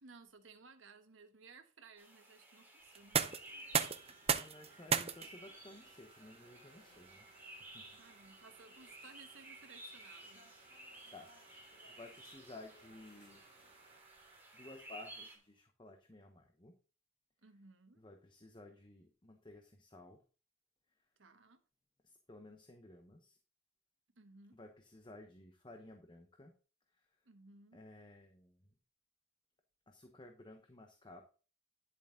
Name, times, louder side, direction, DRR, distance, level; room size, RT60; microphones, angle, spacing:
voice 1, 0.0-3.3 8.0-10.8 17.4-18.0 21.2-21.6 24.1-24.6 27.2-27.8, right 4 dB, 75° right, 1.2 m, -59 dB
sound 1, 2.0-15.4, right 1 dB, 10° right, 2.8 m, -55 dB
sound 2, 2.9-14.7, right 7 dB, 30° right, 0.5 m, -42 dB
sound 3, 3.3-14.0, left 1 dB, 55° left, 4.3 m, -68 dB
voice 2, 4.3-7.3 7.6-7.8 11.1-11.3 11.9-13.4 14.5-16.7 18.0-20.2 22.0-23.4 24.5-26.5 26.9-27.1 27.7-28.7 29.9-31.2, left 2 dB, 25° left, 0.9 m, -55 dB
10.5 x 7.1 x 3.8 m
head